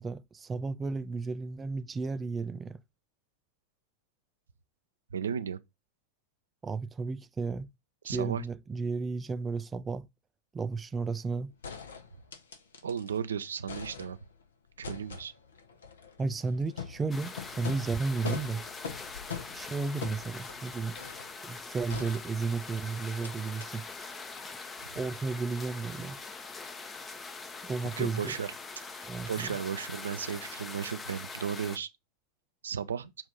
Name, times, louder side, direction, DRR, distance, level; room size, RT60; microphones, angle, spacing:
voice 1, 0.0-2.8 6.6-7.7 8.0-10.1 10.5-11.5 16.2-18.6 19.5-21.0 21.4-23.8 25.0-26.2 27.6-28.3 29.0-29.5, right 4 dB, 15° right, 0.4 m, -33 dB
voice 2, 5.1-5.6 8.0-8.4 12.8-14.2 14.8-15.3 28.0-28.5 28.9-31.9 32.6-33.1, right 7 dB, 70° right, 0.5 m, -35 dB
sound 1, 11.2-11.3 11.6-13.2 13.5-14.4 14.8-21.4 21.9-22.7 23.2-23.3 23.6-23.7, left 6 dB, 65° left, 0.9 m, -43 dB
Rain Moderate C, 17.1-31.8, left 4 dB, 20° left, 0.7 m, -43 dB
7.2 x 2.6 x 5.2 m
figure-of-eight pair, 90°, 0 cm